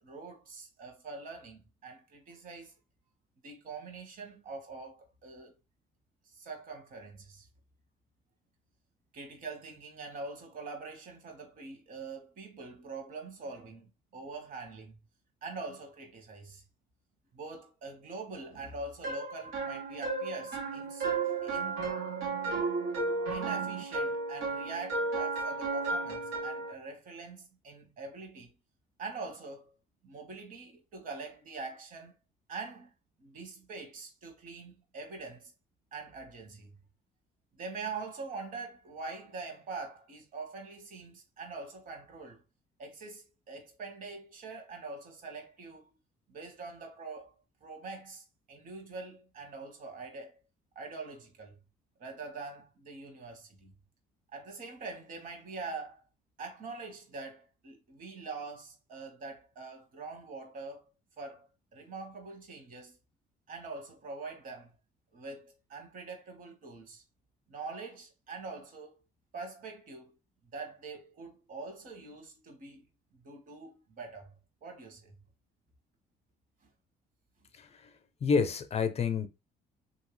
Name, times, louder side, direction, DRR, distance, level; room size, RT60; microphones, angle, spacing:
voice 1, 0.0-2.7 3.4-5.5 6.2-7.5 9.1-15.0 15.4-16.6 17.3-21.9 23.3-28.5 29.0-29.7 30.0-32.1 32.5-32.9 33.2-35.5 35.9-36.8 37.5-42.4 42.8-45.9 46.3-47.3 47.6-50.4 50.7-51.6 52.0-53.7 54.3-56.0 56.4-60.8 61.2-63.0 63.5-64.7 65.1-67.0 67.5-68.9 69.3-70.1 70.5-72.8 73.2-74.3 74.6-75.1, right 3 dB, 55° right, 1.4 m, -44 dB
sound 1, 19.0-26.7, right 3 dB, 90° right, 1.2 m, -33 dB
voice 2, 77.6-77.9 78.2-79.3, left 5 dB, 40° left, 0.6 m, -29 dB
3.1 x 2.8 x 3.1 m
cardioid pair, 110°, 17 cm